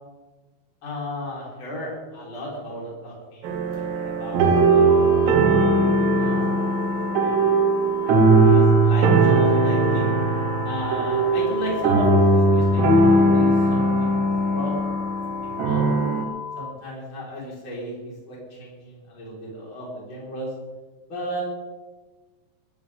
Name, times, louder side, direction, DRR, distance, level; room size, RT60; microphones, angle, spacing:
voice 1, 0.8-5.2 6.2-6.6 6.9-7.5 8.0-10.1 10.6-12.8 13.2-14.7 15.2-15.8 16.6-20.5 21.1-21.4, equal, 30° left, -5 dB, 5.4 m, -34 dB
sound 1, 3.4-16.3, right 2 dB, 80° right, 3.7 m, -19 dB
sound 2, 4.9-16.7, left 6 dB, 45° left, 1.7 m, -35 dB
19.5 x 15.0 x 3.8 m, 1.3 s
omnidirectional pair, 4.9 m